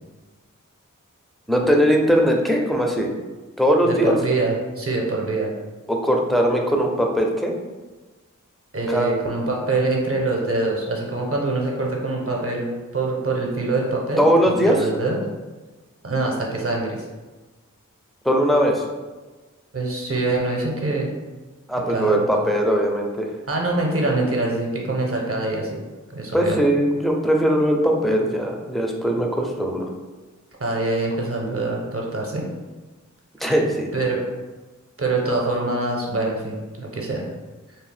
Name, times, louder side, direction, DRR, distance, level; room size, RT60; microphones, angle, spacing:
voice 1, 1.5-3.1 3.6-4.2 5.9-7.5 8.9-9.1 14.2-14.8 18.2-18.8 21.7-23.3 26.3-29.8 33.4-33.9, equal, ahead, 0 dB, 0.4 m, -20 dB
voice 2, 3.9-5.5 8.7-14.3 14.6-15.2 16.0-17.1 19.7-21.1 21.9-22.3 23.5-25.8 26.1-26.6 30.6-32.4 33.9-34.2 35.0-37.2, right 2 dB, 45° right, -1 dB, 0.6 m, -24 dB
2.7 x 2.0 x 3.2 m, 1.2 s
wide cardioid pair, 45°, 31 cm